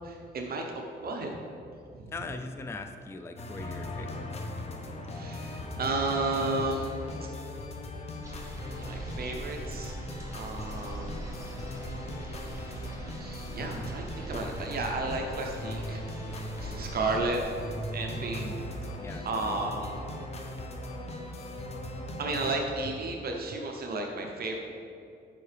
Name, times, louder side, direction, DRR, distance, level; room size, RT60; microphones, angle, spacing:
voice 1, 0.0-0.6 1.0-1.3 5.1-6.9 8.8-9.9 10.3-11.2 12.4-16.0 16.6-17.4 17.9-18.5 19.2-20.0 22.2-24.6, right 2 dB, 55° right, 1 dB, 0.7 m, -33 dB
voice 2, 2.1-4.4 18.4-18.7 18.9-19.7, left 3 dB, 15° left, 6 dB, 0.4 m, -41 dB
sound 1, 3.4-22.5, left 1 dB, 35° left, 0.8 m, -39 dB
sound 2, 8.2-17.4, right 1 dB, 15° right, 1.1 m, -43 dB
9.1 x 5.6 x 3.3 m, 2.7 s
cardioid pair, 130°, 19 cm